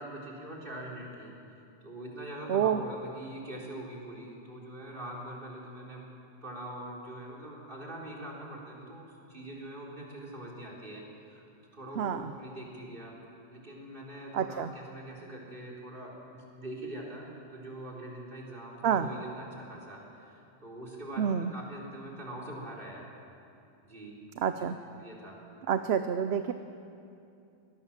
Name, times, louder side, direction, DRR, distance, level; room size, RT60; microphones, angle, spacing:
voice 1, 0.0-1.3 1.8-6.1 6.4-11.4 11.7-13.2 13.5-23.0 23.8-24.2 24.5-24.7 25.0-25.4, right 1 dB, 50° right, -3 dB, 4.4 m, -43 dB
voice 2, 2.5-2.8 12.0-12.3 14.3-14.7 18.8-19.1 21.2-21.5 24.4-24.8 25.7-26.5, right 8 dB, 70° right, 10 dB, 1.0 m, -28 dB
24.0 x 18.5 x 7.4 m, 2.6 s
omnidirectional pair, 1.1 m